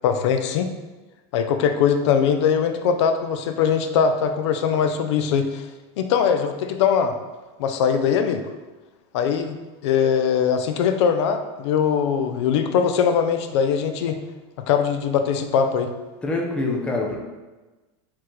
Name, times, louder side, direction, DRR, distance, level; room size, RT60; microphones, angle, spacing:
voice 1, 0.0-0.7 1.3-5.6 6.0-7.1 7.6-8.4 9.1-9.6 9.8-14.2 14.7-15.9, left 7 dB, 70° left, 7 dB, 0.5 m, -21 dB
voice 2, 16.2-17.2, left 2 dB, 5° left, -1 dB, 0.4 m, -25 dB
4.6 x 3.7 x 3.1 m, 1.2 s
supercardioid pair, 170°, 15 cm